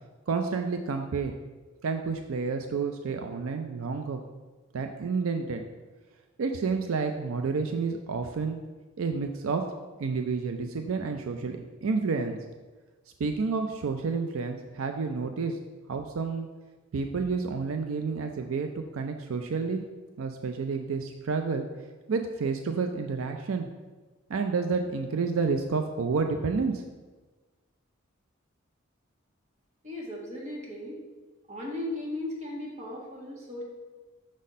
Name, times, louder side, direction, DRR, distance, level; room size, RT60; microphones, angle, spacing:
voice 1, 0.3-1.3 1.8-4.2 4.7-5.6 6.4-8.6 9.0-9.6 10.0-12.4 13.2-15.6 15.9-16.5 16.9-19.8 20.2-21.7 22.1-23.7 24.3-26.8, right 4 dB, 80° right, 5 dB, 0.4 m, -30 dB
voice 2, 29.8-31.0 31.5-33.6, left 1 dB, 35° right, -3 dB, 1.5 m, -36 dB
6.3 x 4.1 x 5.1 m, 1.3 s
head